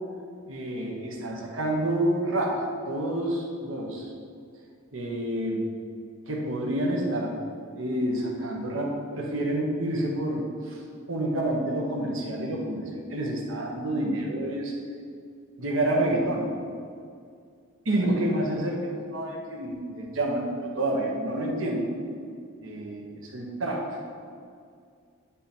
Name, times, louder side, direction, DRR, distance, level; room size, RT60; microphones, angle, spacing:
voice 1, 0.4-2.6 2.8-4.1 4.9-5.7 6.3-7.4 7.8-10.8 11.1-14.7 15.6-16.4 17.8-21.9 22.6-24.0, right 1 dB, 80° right, -1 dB, 1.2 m, -28 dB
9.8 x 3.7 x 4.3 m, 2.2 s
head